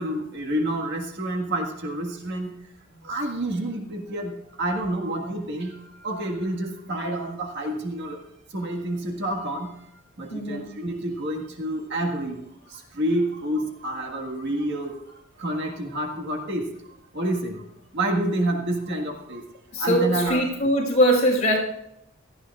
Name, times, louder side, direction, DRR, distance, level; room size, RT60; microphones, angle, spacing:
voice 1, 0.0-2.6 2.9-8.2 8.5-9.8 10.2-12.4 12.6-15.0 15.4-16.7 17.1-17.6 17.9-19.4 19.8-20.7, right 1 dB, 55° right, 2 dB, 1.7 m, -28 dB
voice 2, 10.3-10.7 19.7-21.6, equal, 35° left, -2 dB, 5.4 m, -21 dB
17.5 x 13.0 x 2.4 m, 0.81 s
head